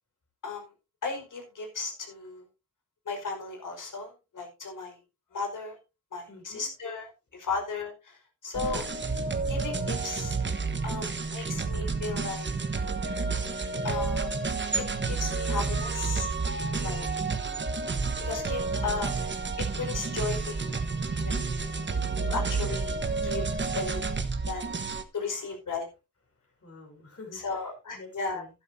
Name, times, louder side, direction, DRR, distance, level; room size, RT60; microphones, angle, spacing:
voice 1, 1.0-2.4 3.0-5.0 5.3-5.8 6.1-8.8 9.5-10.4 10.8-12.5 13.8-14.3 15.1-16.3 16.8-17.1 18.2-19.1 19.6-20.8 21.2-21.6 22.2-23.0 23.2-23.4 23.7-24.0 24.4-24.8 25.1-25.9 27.3-28.4, left 4 dB, 70° left, 3 dB, 5.0 m, -35 dB
voice 2, 6.3-6.7 21.0-22.3 26.6-28.5, left 3 dB, 45° left, 2 dB, 5.9 m, -50 dB
sound 1, 8.5-25.0, right 4 dB, 35° right, 1.2 m, -30 dB
12.0 x 12.0 x 2.7 m, 0.28 s
wide cardioid pair, 120°, 33 cm